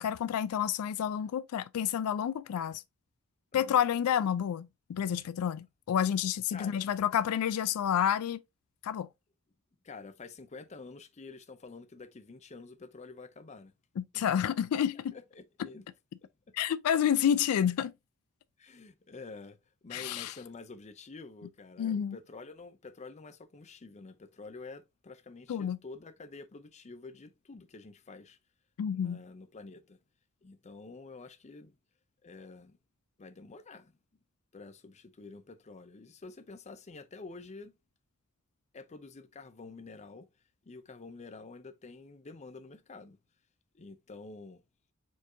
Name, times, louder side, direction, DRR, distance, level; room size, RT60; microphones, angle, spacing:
voice 1, 0.0-2.8 3.5-8.4 8.8-9.1 14.0-15.1 16.5-17.9 19.9-20.3 21.8-22.2 25.5-25.8 28.8-29.2, left 9 dB, 80° left, 0.3 m, -29 dB
voice 2, 6.5-6.9 9.8-13.7 14.1-14.5 14.9-15.9 16.2-16.3 18.6-19.6 19.8-28.4 28.9-30.0 30.4-31.8 32.2-32.8 33.2-34.0 34.5-37.7 38.7-40.3 40.6-43.2 43.7-44.6, left 3 dB, 30° left, 0.5 m, -48 dB
4.5 x 4.5 x 2.6 m
head